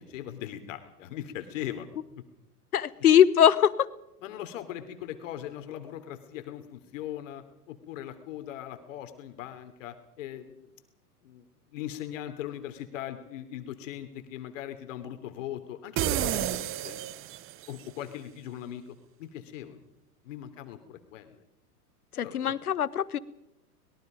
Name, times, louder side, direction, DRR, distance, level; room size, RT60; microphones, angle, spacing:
voice 1, 0.0-1.9 2.2-2.3 4.2-10.7 11.2-11.5 11.7-17.0 17.7-19.8 20.2-21.4 22.1-22.5, left 11 dB, 55° left, 8 dB, 3.3 m, -40 dB
voice 2, 2.7-3.7 22.2-23.2, left 9 dB, 70° left, 18 dB, 1.4 m, -21 dB
sound 1, 16.0-17.8, right 13 dB, 30° right, 1.1 m, -30 dB
25.0 x 22.0 x 5.2 m, 0.83 s
figure-of-eight pair, 95°, 46 cm